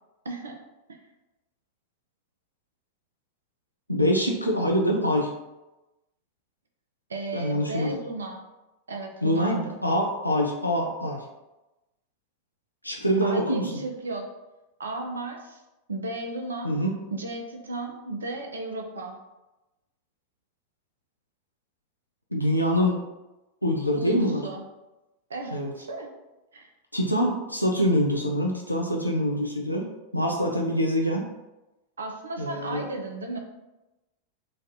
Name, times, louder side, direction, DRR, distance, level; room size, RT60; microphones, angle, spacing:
voice 1, 0.2-0.6 0.9-1.0 7.1-8.4 8.9-9.7 13.2-14.3 14.8-15.6 15.9-16.7 17.1-19.2 23.9-24.6 25.3-26.1 26.5-26.7 32.0-33.4, right 2 dB, 70° right, 2 dB, 0.5 m, -34 dB
voice 2, 3.9-5.3 7.3-8.0 9.2-11.2 12.8-13.8 16.6-17.0 22.3-23.0 23.6-24.4 25.5-25.7 26.9-29.8 30.1-31.3 32.4-32.8, equal, 85° left, 0 dB, 0.3 m, -25 dB
3.1 x 2.3 x 2.6 m, 1.0 s
figure-of-eight pair, 90°, 0 cm